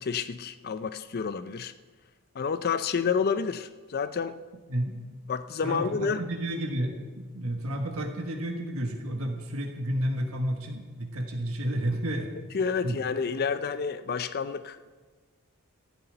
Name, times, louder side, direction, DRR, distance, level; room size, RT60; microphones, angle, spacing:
voice 1, 0.0-1.7 2.3-4.4 5.3-6.2 12.5-14.9, left 5 dB, 45° left, 11 dB, 0.4 m, -29 dB
voice 2, 4.7-5.0 5.6-12.3 12.8-13.0, right 1 dB, 75° right, 2 dB, 1.4 m, -31 dB
14.5 x 6.9 x 8.9 m, 1.4 s
head